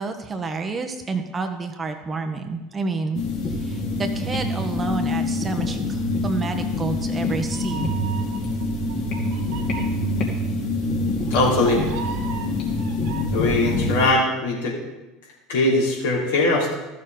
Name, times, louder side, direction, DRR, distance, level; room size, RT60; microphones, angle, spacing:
voice 1, 0.0-3.2 3.6-8.0, right 4 dB, 25° right, 6 dB, 1.1 m, -29 dB
sound 1, 3.1-14.1, left 2 dB, 55° left, 2.4 m, -25 dB
Meow, 6.5-13.2, right 5 dB, 65° right, 1.7 m, -36 dB
voice 2, 11.3-11.8 13.3-14.8 15.5-16.7, left 2 dB, 75° left, -5 dB, 3.2 m, -20 dB
13.5 x 6.7 x 4.0 m, 1.1 s
hypercardioid pair, 75°, 0 cm